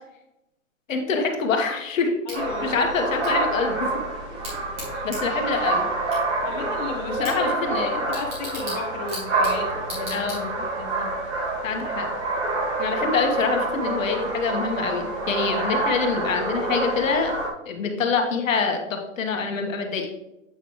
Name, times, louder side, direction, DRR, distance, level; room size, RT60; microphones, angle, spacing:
voice 1, 0.9-2.2 2.6-3.9 5.0-5.8 7.2-8.0 10.1-10.6 11.6-12.1 12.8-17.3 17.6-20.1, left 5 dB, 70° left, 3 dB, 1.4 m, -25 dB
voice 2, 2.3-2.9 4.3-4.4 6.4-7.5 7.8-11.1, left 4 dB, 30° left, -2 dB, 1.4 m, -34 dB
Bicycle / Tick, 2.3-10.8, equal, 15° right, 2.7 m, -40 dB
sound 1, 2.3-17.5, right 2 dB, 55° right, 2.3 m, -27 dB
8.0 x 5.8 x 3.1 m, 0.88 s
hypercardioid pair, 160°, 40 cm